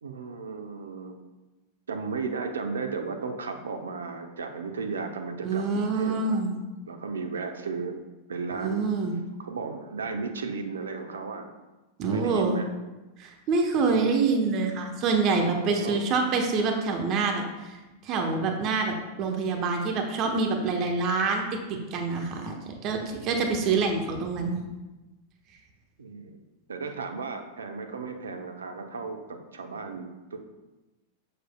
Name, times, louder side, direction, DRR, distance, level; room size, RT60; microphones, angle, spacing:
voice 1, 0.0-1.2 1.9-6.4 6.9-8.0 8.3-11.5 12.1-12.7 13.8-14.0 15.6-16.0 26.0-26.4 26.7-30.5, right 4 dB, 80° right, 6 dB, 0.7 m, -35 dB
voice 2, 5.4-6.6 8.6-9.1 12.0-12.6 13.2-17.7 18.0-24.6, right 4 dB, 40° right, 3 dB, 0.9 m, -26 dB
6.6 x 6.5 x 2.2 m, 1.1 s
figure-of-eight pair, 95°, 0 cm